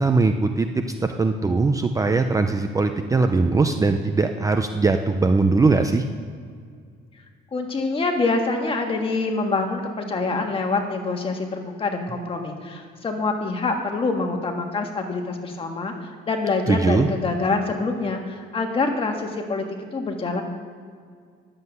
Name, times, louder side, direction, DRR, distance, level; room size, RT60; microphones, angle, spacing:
voice 1, 0.0-6.0 16.7-17.1, right 3 dB, 15° right, 6 dB, 0.6 m, -20 dB
voice 2, 7.5-9.8 10.1-15.9 16.3-19.6 19.9-20.4, left 3 dB, 30° left, 3 dB, 1.7 m, -25 dB
11.0 x 7.6 x 8.1 m, 2.1 s
cardioid pair, 135°, 19 cm